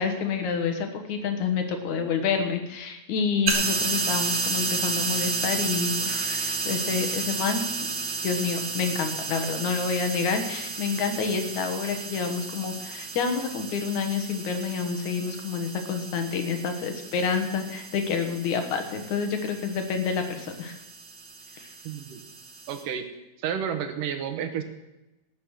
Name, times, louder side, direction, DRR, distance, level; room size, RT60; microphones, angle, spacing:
voice 1, 0.0-7.6 8.2-20.8 21.5-21.7, left 6 dB, 70° left, 6 dB, 2.6 m, -28 dB
sound 1, 3.5-22.8, right 4 dB, 55° right, 0.8 m, -32 dB
voice 2, 21.8-22.2 22.7-23.1 23.4-24.6, right 8 dB, 85° right, 8 dB, 2.7 m, -30 dB
18.5 x 7.4 x 6.4 m, 0.99 s
omnidirectional pair, 3.7 m